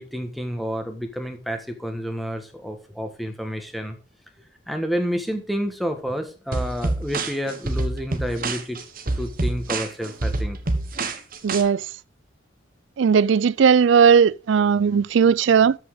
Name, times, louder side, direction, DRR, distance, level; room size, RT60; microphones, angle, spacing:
voice 1, 0.0-4.0 4.7-8.8 9.2-10.8, equal, ahead, 1.3 m, -29 dB
sound 1, 6.5-11.6, right 2 dB, 45° right, 1.3 m, -27 dB
voice 2, 11.4-11.8 13.0-15.8, right 6 dB, 75° right, 0.4 m, -17 dB
13.0 x 5.5 x 3.7 m
head